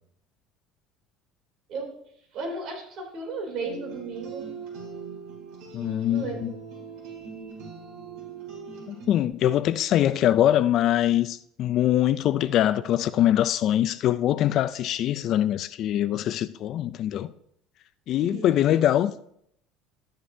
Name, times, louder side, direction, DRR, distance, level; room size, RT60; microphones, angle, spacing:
voice 1, 2.3-4.5 6.1-6.4 18.2-18.5, right 3 dB, 45° right, 3.0 m, -34 dB
sound 1, 3.6-9.3, right 5 dB, 65° right, 3.4 m, -41 dB
voice 2, 5.7-6.5 8.9-17.3 18.1-19.2, left 12 dB, 40° left, 0.3 m, -23 dB
12.5 x 10.0 x 2.7 m
cardioid pair, 170°, 0 cm